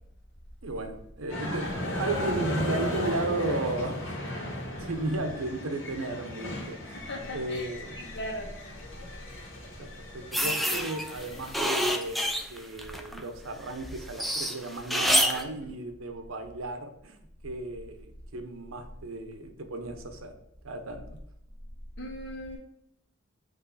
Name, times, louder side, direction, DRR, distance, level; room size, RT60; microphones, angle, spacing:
voice 1, 0.6-4.2 4.8-7.0 7.3-8.0 9.8-17.2 17.4-18.1 18.3-20.3 20.6-21.0, right 2 dB, 90° right, 7 dB, 0.8 m, -34 dB
sound 1, 1.3-11.6, left 1 dB, 90° left, 2.0 m, -36 dB
voice 2, 6.9-7.7 8.0-8.5 22.0-22.6, equal, 60° left, 0 dB, 1.4 m, -38 dB
sound 2, 10.3-13.2 13.6-15.4, equal, ahead, 0.4 m, -28 dB
7.9 x 3.2 x 4.0 m, 0.78 s
head